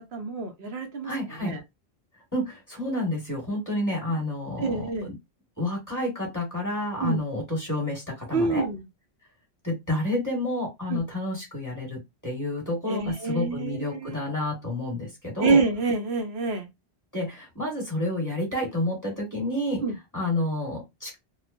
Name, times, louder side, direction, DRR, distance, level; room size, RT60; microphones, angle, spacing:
voice 1, 0.1-1.6 4.1-4.2 4.6-5.1 7.0-7.2 8.3-8.8 10.9-11.0 12.9-14.2 15.4-16.7 19.8-19.9, right 4 dB, 75° right, 0.9 m, -27 dB
voice 2, 1.0-1.5 2.3-5.1 5.6-8.6 9.6-15.6 17.1-19.8 20.1-21.1, left 1 dB, 15° left, 1.3 m, -29 dB
2.9 x 2.1 x 2.4 m
omnidirectional pair, 1.1 m